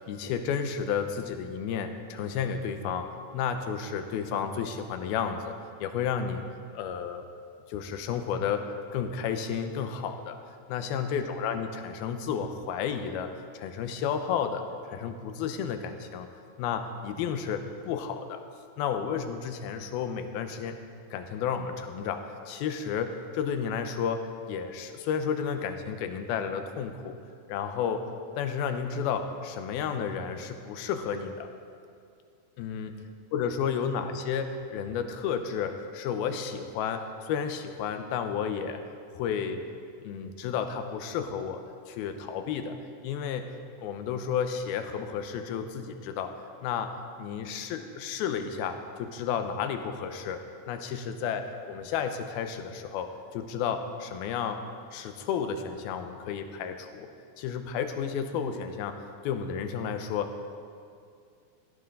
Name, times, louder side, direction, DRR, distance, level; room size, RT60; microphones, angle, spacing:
voice 1, 0.1-5.5 5.8-6.4 6.7-7.2 7.7-10.4 10.7-16.3 16.6-18.4 18.8-20.8 21.1-27.2 27.5-28.1 28.3-31.5 32.6-32.9 33.3-38.8 39.1-39.6 40.0-42.8 43.0-43.5 43.8-54.6 54.9-57.1 57.4-60.5, left 7 dB, 80° left, 7 dB, 2.6 m, -32 dB
17.0 x 15.0 x 3.8 m, 2.3 s
omnidirectional pair, 4.5 m